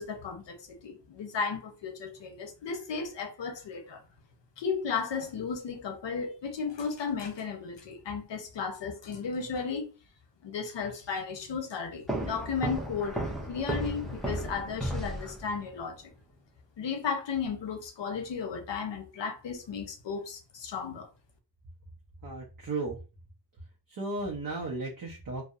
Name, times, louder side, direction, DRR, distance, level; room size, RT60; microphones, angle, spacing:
voice 1, 0.0-4.0 4.6-9.9 10.4-13.2 13.5-16.1 16.8-21.1, left 5 dB, 80° left, 0.7 m, -34 dB
sound 1, 12.1-15.8, right 1 dB, ahead, 0.4 m, -34 dB
voice 2, 22.2-23.0 23.9-25.4, right 2 dB, 50° right, 0.6 m, -35 dB
2.7 x 2.0 x 2.3 m
wide cardioid pair, 150°, 43 cm